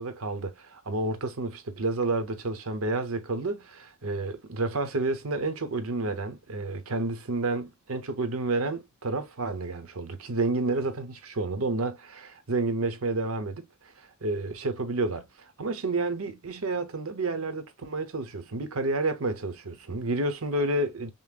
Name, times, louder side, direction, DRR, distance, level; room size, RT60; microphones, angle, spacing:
voice 1, 0.0-13.7 14.0-21.1, right 2 dB, 90° right, 0.9 m, -30 dB
5.4 x 2.1 x 2.4 m
head